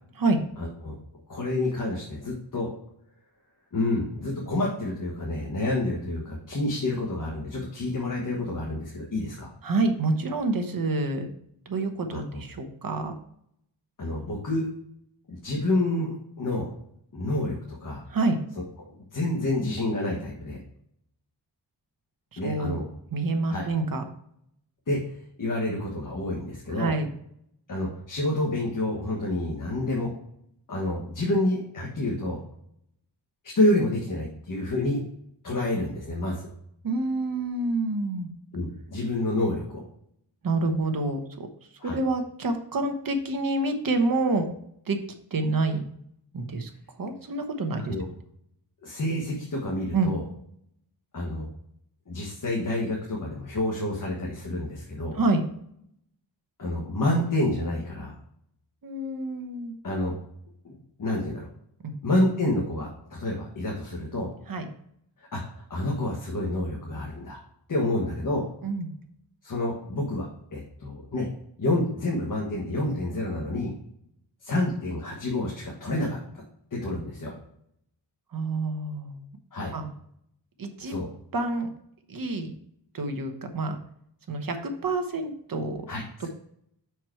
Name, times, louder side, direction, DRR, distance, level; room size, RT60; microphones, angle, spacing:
voice 1, 0.6-0.9 1.3-2.7 3.7-9.5 12.1-12.4 14.0-14.7 15.3-16.7 17.1-18.0 18.8-20.6 22.4-22.9 23.5-23.7 24.9-25.0 25.4-26.9 27.7-30.1 30.7-32.4 33.4-35.0 35.4-36.5 38.5-39.8 41.8-42.0 47.9-48.0 48.8-50.2 51.1-51.5 52.1-55.2 56.6-58.1 59.8-60.2 60.6-61.5 62.0-64.3 65.3-67.4 67.7-68.5 69.4-71.3 71.6-73.7 74.4-76.4 76.7-77.3 79.5-79.7 80.8-81.1 85.9-86.3, left 1 dB, 45° left, -2 dB, 1.4 m, -28 dB
voice 2, 9.6-11.3 11.7-13.1 18.1-18.4 22.3-22.8 23.1-24.0 26.8-27.1 36.8-38.3 40.4-41.5 41.8-44.5 44.9-45.0 45.3-45.9 46.3-46.7 47.0-47.9 49.9-50.1 55.1-55.4 58.8-59.8 61.8-62.0 64.5-64.7 68.6-68.9 78.3-79.2 79.7-79.9 80.6-81.0 81.3-81.7 82.1-82.5 82.9-83.8 84.3-85.9, right 2 dB, 50° right, 6 dB, 1.1 m, -27 dB
6.0 x 4.7 x 4.5 m, 0.71 s
wide cardioid pair, 125°, 43 cm